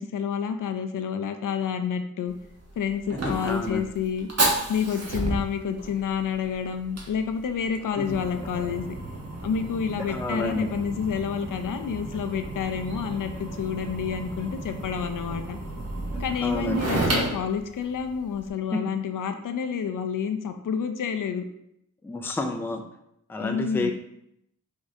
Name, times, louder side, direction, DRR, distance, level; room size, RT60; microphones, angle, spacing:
voice 1, 0.0-2.3 2.8-4.3 4.7-8.8 9.4-15.6 16.2-21.4 23.4-23.9, left 7 dB, 65° left, 7 dB, 0.5 m, -29 dB
Fire, 2.3-18.5, right 2 dB, 45° right, 1.1 m, -33 dB
voice 2, 3.2-3.8 8.0-8.1 10.1-10.7 16.4-16.8 18.7-18.8 22.0-22.8 23.3-23.9, left 2 dB, 5° left, 4 dB, 0.4 m, -29 dB
sound 1, 7.9-10.8 11.4-18.7 19.1-19.3 19.6-19.8 20.6-20.7, right 1 dB, 25° right, 1.5 m, -43 dB
4.9 x 3.6 x 2.7 m, 0.77 s
wide cardioid pair, 105°, 35 cm